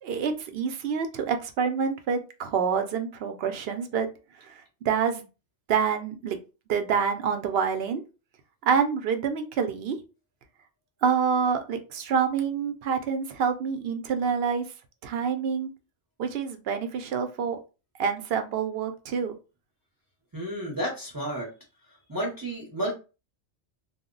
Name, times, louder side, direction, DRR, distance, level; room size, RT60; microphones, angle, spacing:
voice 1, 0.0-4.1 4.4-5.3 5.7-6.4 6.7-8.0 8.6-10.0 11.0-14.7 15.0-15.7 16.2-17.6 18.0-19.3, right 6 dB, 65° right, 7 dB, 0.7 m, -27 dB
voice 2, 20.3-21.5 22.1-22.9, right 1 dB, 25° right, -2 dB, 0.6 m, -31 dB
2.2 x 2.0 x 3.7 m, 0.31 s
omnidirectional pair, 1.2 m